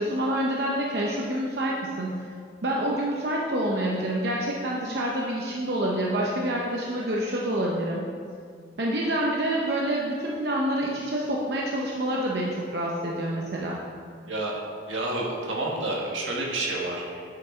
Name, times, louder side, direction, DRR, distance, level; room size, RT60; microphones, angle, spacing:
voice 1, 0.0-2.1 2.6-8.0 8.8-13.8, right 1 dB, 60° right, -3 dB, 0.7 m, -27 dB
voice 2, 14.9-17.2, right 2 dB, 85° right, -2 dB, 1.6 m, -29 dB
7.8 x 5.8 x 4.4 m, 2.2 s
head